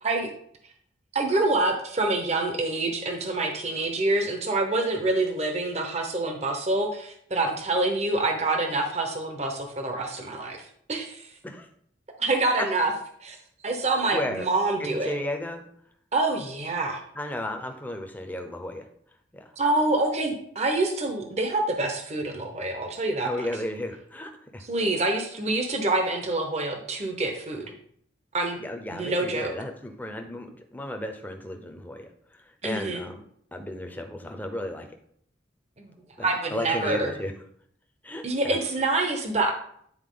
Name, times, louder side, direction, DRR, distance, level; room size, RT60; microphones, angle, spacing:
voice 1, 1.1-11.3 12.2-12.9 13.2-13.4 13.6-15.1 16.1-17.0 19.6-23.5 24.6-27.7 28.3-28.6 28.9-29.5 32.6-33.0 35.8-37.1 38.2-39.5, right 2 dB, 35° right, 3 dB, 0.9 m, -26 dB
voice 2, 14.1-14.5 14.8-15.6 17.2-18.8 19.3-19.5 23.2-24.6 28.6-33.2 33.5-34.9 36.2-37.3 38.0-38.6, left 1 dB, 10° left, 5 dB, 0.7 m, -34 dB
9.5 x 4.3 x 3.8 m, 0.66 s
head